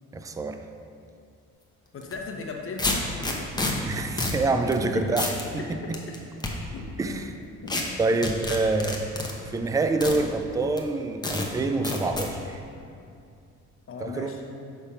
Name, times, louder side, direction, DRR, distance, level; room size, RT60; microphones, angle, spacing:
voice 1, 0.1-0.6 3.8-5.3 5.7-6.0 7.0-7.3 8.0-9.1 9.5-12.6 14.0-14.3, right 3 dB, 10° right, 7 dB, 0.3 m, -26 dB
voice 2, 1.9-3.7 4.8-5.2 5.7-6.0 6.7-7.7 13.9-14.4, left 4 dB, 45° left, 1 dB, 0.9 m, -38 dB
sound 1, 2.0-2.2 2.8-3.7 4.2-4.4 4.7-4.8 5.2-5.4 5.9-6.5 7.7-7.8 8.2-9.3 10.0-10.2 10.8-10.9 11.2-11.5 11.8-12.3, left 2 dB, 15° left, 0.8 m, -28 dB
5.8 x 3.5 x 5.5 m, 2.5 s
cardioid pair, 90°, 30 cm